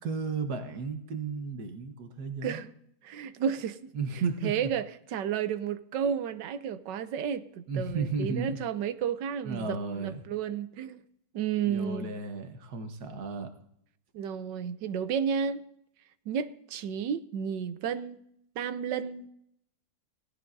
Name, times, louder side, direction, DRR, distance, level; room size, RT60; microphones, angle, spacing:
voice 1, 0.0-2.6 3.9-4.5 7.7-8.6 9.4-10.3 11.6-13.5, right 4 dB, 55° right, 1.7 m, -34 dB
voice 2, 2.4-2.7 3.0-3.9 4.4-11.0 11.3-12.1 14.1-15.6 16.3-18.2 18.6-19.3, right 8 dB, 75° right, 1.3 m, -32 dB
18.5 x 14.5 x 2.7 m
omnidirectional pair, 2.0 m